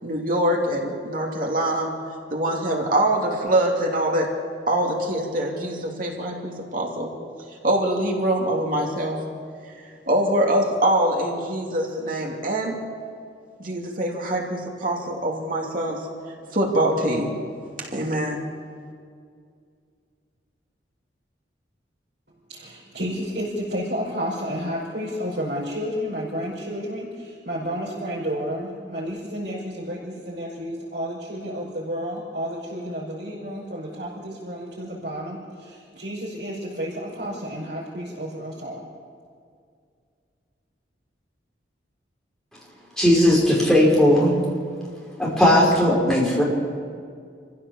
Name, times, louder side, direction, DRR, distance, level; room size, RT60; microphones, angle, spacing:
voice 1, 0.0-1.9 2.3-4.3 4.7-7.1 7.6-9.2 10.1-12.7 13.6-16.0 16.5-17.3 17.9-18.4, right 1 dB, 45° right, -1 dB, 2.8 m, -24 dB
voice 2, 22.5-38.9, equal, 65° right, -7 dB, 5.2 m, -31 dB
voice 3, 43.0-44.3 45.2-46.4, left 1 dB, 5° left, -5 dB, 5.5 m, -17 dB
27.0 x 15.5 x 7.2 m, 2.2 s
head